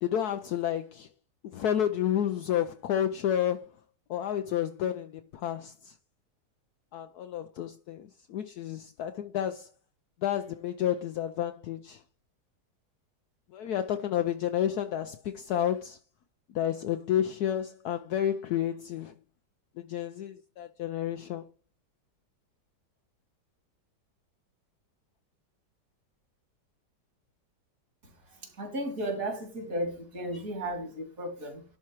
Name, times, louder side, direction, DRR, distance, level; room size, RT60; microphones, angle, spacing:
voice 1, 0.0-1.1 1.5-3.7 4.1-6.0 6.9-9.7 10.2-12.0 13.5-16.0 16.5-19.1 19.8-21.5, left 10 dB, 70° left, 1.1 m, -30 dB
voice 2, 28.0-31.6, right 1 dB, 50° right, 3.2 m, -35 dB
11.0 x 4.5 x 4.7 m
omnidirectional pair, 1.9 m